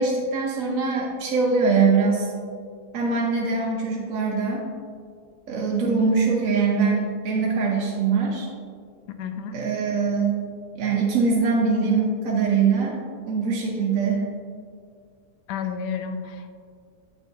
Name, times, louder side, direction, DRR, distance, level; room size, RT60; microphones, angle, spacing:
voice 1, 0.0-2.3 2.9-4.6 5.5-8.5 9.5-10.4 10.7-12.9 13.3-14.3, right 4 dB, 60° right, -3 dB, 1.1 m, -22 dB
voice 2, 9.2-9.6 15.5-16.5, left 6 dB, 80° left, 7 dB, 1.2 m, -31 dB
8.1 x 6.0 x 2.7 m, 2.1 s
omnidirectional pair, 1.8 m